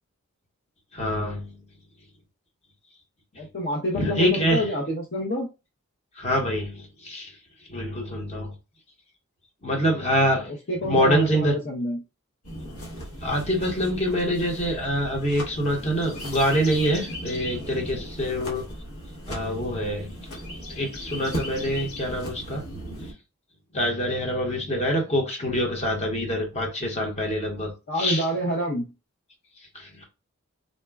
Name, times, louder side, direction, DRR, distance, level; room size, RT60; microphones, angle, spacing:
voice 1, 0.9-1.5 3.9-4.7 6.2-7.3 7.7-8.5 9.6-10.5 10.8-11.5 13.2-18.7 19.3-20.1 20.7-22.6 23.7-28.3 29.7-30.0, equal, 30° left, 0 dB, 0.9 m, -25 dB
voice 2, 3.4-5.5 10.5-12.0 27.9-28.9, equal, 50° left, -1 dB, 0.6 m, -27 dB
sound 1, 12.4-23.1, equal, 85° left, 1.1 m, -37 dB
4.0 x 2.1 x 2.3 m, 0.28 s
head